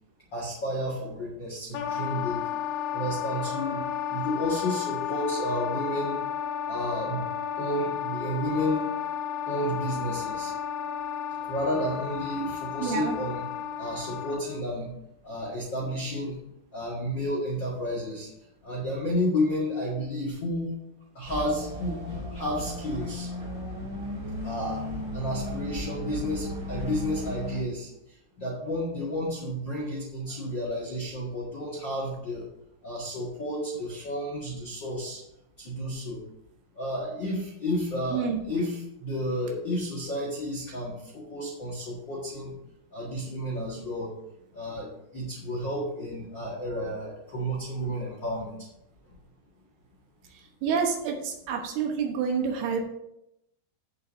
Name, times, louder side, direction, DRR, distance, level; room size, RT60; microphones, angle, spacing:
voice 1, 0.3-2.4 2.9-6.2 6.7-7.3 7.6-8.9 9.5-10.5 11.5-13.5 13.8-14.9 15.2-16.4 16.7-18.3 18.6-20.7 21.1-22.0 22.3-23.3 24.4-24.8 25.1-27.9 28.4-32.5 32.8-35.2 35.6-36.2 36.8-42.5 42.9-44.1 44.5-48.6, equal, 50° left, -4 dB, 1.4 m, -31 dB
Wind instrument woodwind instrument, 1.7-14.6, left 8 dB, 80° left, 2.4 m, -33 dB
voice 2, 12.8-13.2 38.1-38.4 50.6-52.8, right 6 dB, 75° right, 2 dB, 3.0 m, -28 dB
sound 1, 21.2-27.6, left 1 dB, 15° right, 2.9 m, -35 dB
15.5 x 6.9 x 2.7 m, 0.82 s
omnidirectional pair, 4.8 m